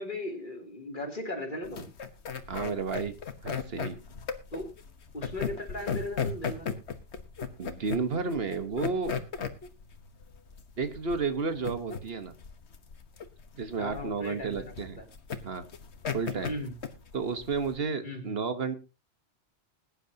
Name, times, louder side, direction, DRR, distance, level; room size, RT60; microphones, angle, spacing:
voice 1, 0.0-1.8 4.5-4.7 5.1-6.8 13.8-15.0 16.4-16.7 18.0-18.4, left 1 dB, 50° left, 2 dB, 3.2 m, -37 dB
sound 1, 1.6-17.8, left 6 dB, 85° left, 1.5 m, -36 dB
voice 2, 2.5-3.1 3.4-4.0 7.6-9.1 10.8-12.3 13.6-15.0 15.4-15.7 16.1-16.5 17.1-18.8, right 4 dB, 65° right, 10 dB, 1.4 m, -32 dB
20.5 x 9.9 x 2.8 m, 0.27 s
omnidirectional pair, 1.1 m